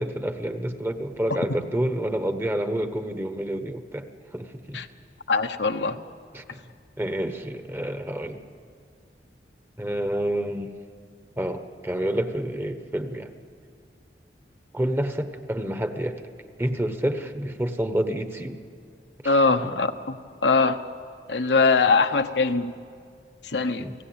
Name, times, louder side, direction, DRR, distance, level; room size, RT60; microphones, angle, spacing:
voice 1, 0.0-4.1 4.3-4.8 6.3-6.6 7.0-8.4 9.8-10.7 11.4-13.3 14.7-16.2 16.6-18.6 19.2-19.3 23.8-23.9, right 1 dB, 15° right, 8 dB, 1.1 m, -28 dB
voice 2, 5.3-6.0 19.2-20.2 20.4-20.8 21.3-22.7 23.4-23.8, left 4 dB, 75° left, 7 dB, 1.0 m, -22 dB
29.5 x 18.0 x 8.8 m, 2.2 s
head